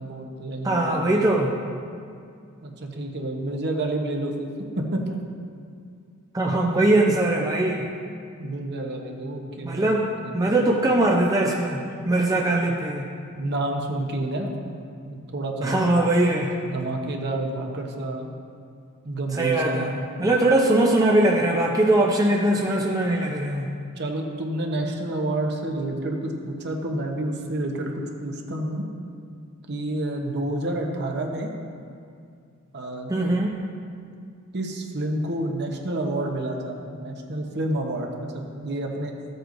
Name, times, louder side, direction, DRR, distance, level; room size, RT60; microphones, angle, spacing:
voice 1, 0.0-1.2 2.6-4.5 4.8-5.2 8.4-10.7 13.4-15.8 16.6-18.3 19.0-20.0 24.0-27.9 28.2-28.9 29.7-31.5 32.7-33.1 34.5-39.1, right 1 dB, 50° right, 1 dB, 1.0 m, -29 dB
voice 2, 0.6-1.5 6.3-7.9 9.6-10.1 10.3-13.0 15.6-16.5 19.3-19.9 20.2-23.7 33.1-33.5, right 1 dB, 15° right, -2 dB, 0.6 m, -21 dB
14.0 x 7.8 x 2.6 m, 2.3 s
head